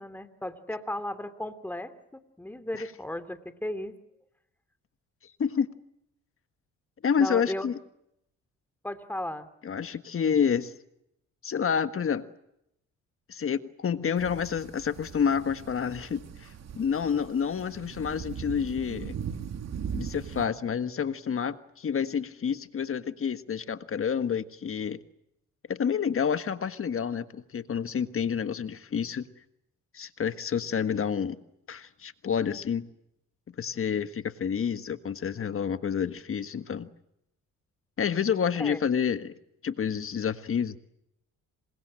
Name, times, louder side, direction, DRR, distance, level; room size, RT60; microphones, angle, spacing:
voice 1, 0.0-4.0 7.2-7.7 8.8-9.5 38.6-38.8, left 1 dB, 5° left, 10 dB, 2.8 m, -35 dB
voice 2, 7.0-7.8 9.6-10.7 11.4-12.3 13.3-19.2 19.9-25.0 25.7-29.3 29.9-31.4 31.7-32.9 33.6-36.9 38.0-39.3 39.6-40.8, left 7 dB, 45° left, 10 dB, 1.6 m, -29 dB
sound 1, 14.2-20.5, right 7 dB, 60° right, 2.7 m, -39 dB
28.0 x 24.0 x 7.7 m, 0.80 s
cardioid pair, 90°, 30 cm